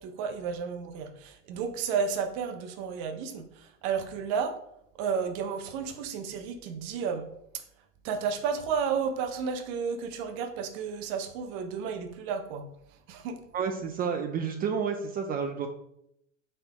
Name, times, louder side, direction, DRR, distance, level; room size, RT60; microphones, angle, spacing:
voice 1, 0.0-4.6 4.9-7.6 8.0-12.7 13.1-13.5, right 6 dB, 50° right, 8 dB, 0.8 m, -32 dB
voice 2, 13.5-15.7, right 6 dB, 25° right, 4 dB, 0.4 m, -30 dB
4.2 x 2.5 x 4.2 m, 0.76 s
hypercardioid pair, 80°, 39 cm